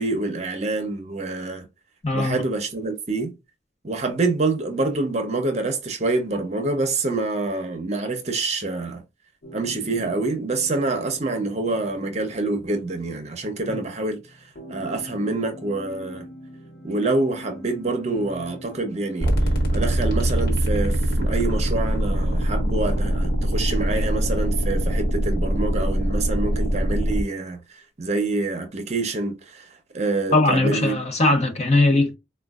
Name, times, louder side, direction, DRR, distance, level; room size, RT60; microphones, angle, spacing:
voice 1, 0.0-1.7 2.1-3.3 3.8-9.0 9.5-16.3 16.8-19.3 19.7-30.9 31.3-31.4, right 3 dB, 40° right, 0.7 m, -26 dB
voice 2, 2.0-2.4 30.3-32.2, left 2 dB, 40° left, 0.7 m, -19 dB
sound 1, 9.4-19.6, equal, 70° left, 1.0 m, -43 dB
sound 2, 19.2-27.2, right 1 dB, 55° left, 1.3 m, -22 dB
4.3 x 2.2 x 2.3 m
head